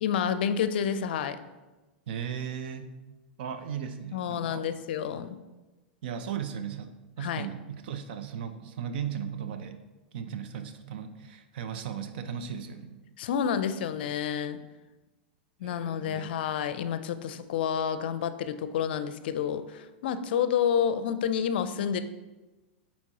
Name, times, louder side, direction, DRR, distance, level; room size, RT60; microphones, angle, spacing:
voice 1, 0.0-1.5 4.1-5.4 7.2-7.5 13.2-14.6 15.6-22.0, left 8 dB, 70° left, 11 dB, 0.4 m, -29 dB
voice 2, 2.1-2.9 3.4-4.7 6.0-9.8 10.1-13.0 15.6-16.3, right 8 dB, 65° right, 9 dB, 0.6 m, -37 dB
8.1 x 4.3 x 2.9 m, 1.1 s
hypercardioid pair, 105°, 6 cm